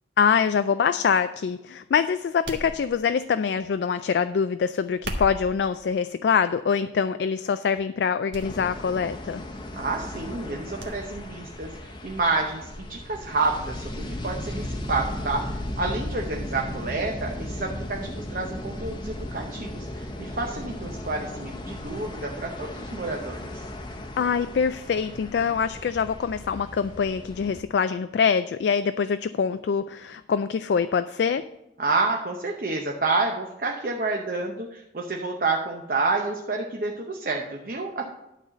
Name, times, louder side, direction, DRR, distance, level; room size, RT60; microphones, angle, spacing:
voice 1, 0.2-9.4 24.2-31.4, left 6 dB, 70° left, 11 dB, 0.3 m, -24 dB
sound 1, 2.4-3.3 4.9-5.6 6.4-6.7 7.2-7.3 8.3-8.5 8.8-8.9 10.8-11.0 11.3-11.4, right 1 dB, 90° right, 1.5 m, -36 dB
sound 2, 8.4-27.6, left 1 dB, 25° left, 0.8 m, -36 dB
voice 2, 9.7-23.6 31.8-38.0, right 3 dB, 50° right, 1 dB, 0.9 m, -29 dB
11.5 x 4.0 x 7.5 m, 0.92 s
head